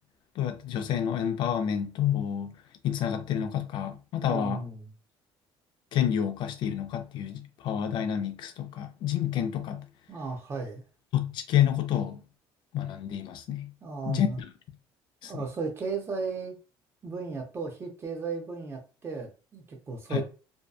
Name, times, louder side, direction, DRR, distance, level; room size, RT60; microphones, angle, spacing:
voice 1, 0.4-2.6 2.8-4.6 5.9-9.8 11.1-12.2 12.7-13.7 14.1-14.5 15.2-15.4 20.1-20.2, left 9 dB, 55° left, 0.4 m, -29 dB
voice 2, 4.2-4.9 10.1-10.8 13.8-14.4 15.2-16.6 17.0-20.2, right 4 dB, 25° right, 0.6 m, -35 dB
2.6 x 2.2 x 2.3 m
cardioid pair, 145°, 10 cm